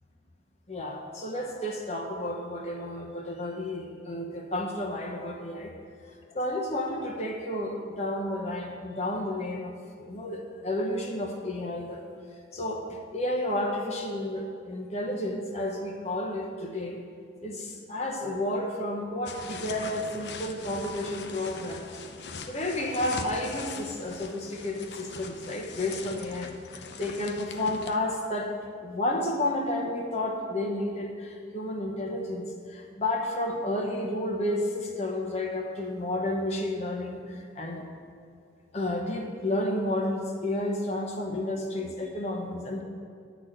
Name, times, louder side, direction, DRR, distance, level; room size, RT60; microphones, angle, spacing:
voice 1, 0.7-5.7 6.3-9.7 10.0-12.0 12.5-17.0 17.4-21.9 22.5-28.5 28.8-37.9 38.7-42.8, left 1 dB, 40° left, 0 dB, 1.0 m, -31 dB
sound 1, 19.3-28.0, left 4 dB, 70° left, 0.7 m, -41 dB
11.5 x 4.1 x 7.8 m, 2.2 s
head